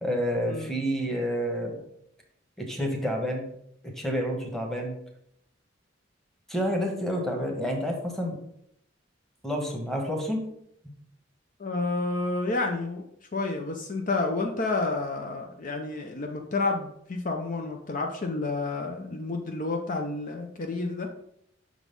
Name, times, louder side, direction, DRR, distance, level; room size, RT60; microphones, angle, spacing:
voice 1, 0.0-1.8 2.6-3.5 4.0-5.0 6.5-8.4 9.4-10.4, equal, ahead, 0 dB, 1.2 m, -29 dB
voice 2, 11.6-13.1 13.3-21.1, left 3 dB, 45° left, 3 dB, 0.6 m, -30 dB
6.0 x 4.0 x 5.2 m, 0.73 s
head